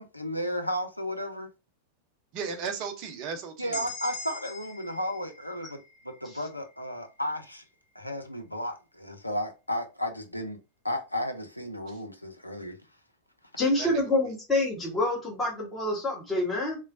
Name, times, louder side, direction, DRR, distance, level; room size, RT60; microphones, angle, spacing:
voice 1, 0.0-1.5 3.6-7.6 8.0-10.6 10.8-12.8, equal, 85° left, 0.5 m, -33 dB
voice 2, 2.3-3.9 11.9-12.0 13.6-14.3, right 6 dB, 40° right, 0.7 m, -36 dB
sound 1, 3.7-7.5, left 2 dB, 45° left, 1.6 m, -43 dB
voice 3, 13.6-16.8, left 2 dB, 15° left, 1.3 m, -27 dB
3.0 x 2.1 x 2.6 m
figure-of-eight pair, 90°, 0 cm